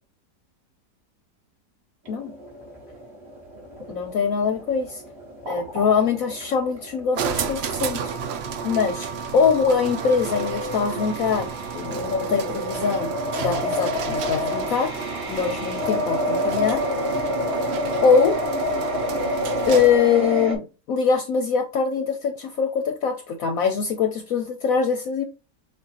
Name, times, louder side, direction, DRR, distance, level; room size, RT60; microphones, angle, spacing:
sound 1, 2.0-8.2, equal, 40° right, 1.7 m, -41 dB
voice 1, 3.9-5.0 5.5-8.1 8.6-15.0 15.3-16.8 18.0-18.4 19.7-25.2, left 6 dB, 65° left, 1.0 m, -23 dB
sound 2, 7.1-20.1, right 6 dB, 85° right, 0.5 m, -32 dB
sound 3, 9.7-20.6, left 1 dB, 25° right, 1.0 m, -28 dB
6.2 x 2.4 x 2.8 m
omnidirectional pair, 1.8 m